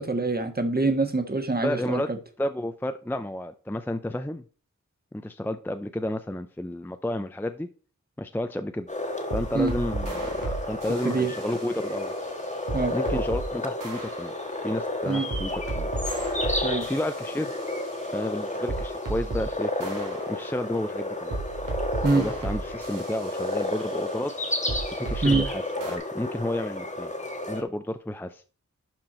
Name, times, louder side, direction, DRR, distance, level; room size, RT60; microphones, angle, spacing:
voice 1, 0.0-2.2 9.5-9.7 11.0-11.3 12.7-12.9 15.0-15.3 16.6-16.9 22.0-22.2 25.2-25.4, right 3 dB, 30° right, 7 dB, 1.5 m, -25 dB
voice 2, 1.6-2.1 2.4-4.4 5.1-7.7 8.2-8.9 9.3-12.1 12.9-14.3 14.6-15.9 16.8-17.5 18.1-21.4 22.1-24.3 24.9-27.1 27.5-28.4, left 1 dB, 5° left, 8 dB, 0.5 m, -31 dB
sound 1, 8.9-27.6, left 1 dB, 25° left, 1.5 m, -32 dB
sound 2, 9.0-13.5 13.8-19.5 19.8-25.5 25.8-26.0, right 3 dB, 90° right, 2.9 m, -35 dB
11.5 x 4.5 x 4.3 m, 0.38 s
wide cardioid pair, 90°, 31 cm